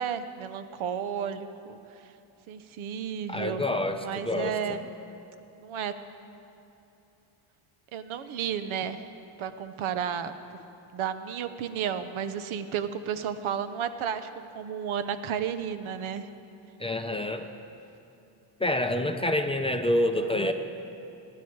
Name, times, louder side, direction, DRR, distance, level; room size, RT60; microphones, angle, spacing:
voice 1, 0.0-1.8 2.5-3.6 3.9-4.9 5.6-5.9 7.9-9.0 9.4-10.3 10.9-14.3 14.5-16.3 20.2-20.5, right 8 dB, 70° right, 11 dB, 0.9 m, -32 dB
voice 2, 3.3-4.0 4.3-4.8 16.8-17.5 18.6-20.5, left 1 dB, 10° left, 5 dB, 0.6 m, -27 dB
24.5 x 10.5 x 4.7 m, 2.8 s
cardioid pair, 130°, 50 cm